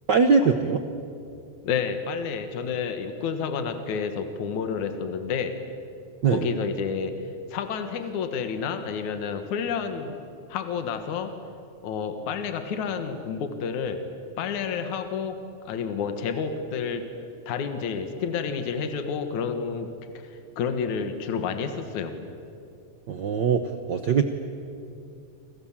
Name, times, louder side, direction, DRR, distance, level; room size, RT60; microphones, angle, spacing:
voice 1, 0.1-0.8 6.2-6.5 23.1-24.2, right 5 dB, 70° right, 7 dB, 1.0 m, -21 dB
voice 2, 1.6-5.6 6.2-7.2 7.5-10.1 10.5-11.4 11.8-14.0 14.4-17.1 17.5-22.2, left 6 dB, 70° left, 8 dB, 2.9 m, -30 dB
30.0 x 26.5 x 7.4 m, 2.6 s
omnidirectional pair, 3.6 m